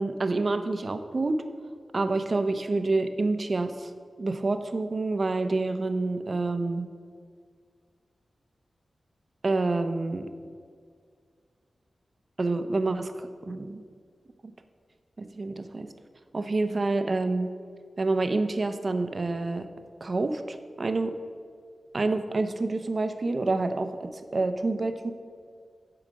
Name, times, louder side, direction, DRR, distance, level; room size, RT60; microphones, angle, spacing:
voice 1, 0.0-1.4 1.9-3.9 4.2-6.9 9.4-10.3 12.4-13.8 15.2-15.9 16.3-17.5 18.0-19.7 20.0-21.1 21.9-25.1, right 3 dB, 50° right, 9 dB, 0.6 m, -28 dB
11.0 x 4.9 x 5.1 m, 2.1 s
cardioid pair, 65°, 0 cm